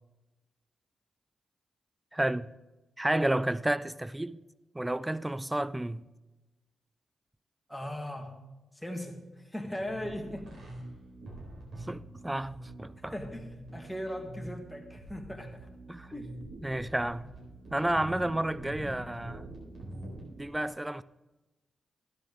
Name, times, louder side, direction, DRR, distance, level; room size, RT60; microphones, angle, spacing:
voice 1, 2.1-2.5 3.0-4.4 4.7-6.1 11.9-13.1 15.9-16.1 16.6-17.3 17.7-19.5 20.2-21.0, right 1 dB, 15° right, 0.5 m, -31 dB
voice 2, 7.7-8.4 8.7-10.5 13.0-15.7 16.1-16.4 16.8-16.9, left 1 dB, 5° left, 2.4 m, -39 dB
sound 1, 9.8-20.4, right 1 dB, 75° right, 4.2 m, -45 dB
12.5 x 10.5 x 3.7 m
supercardioid pair, 45°, 0 cm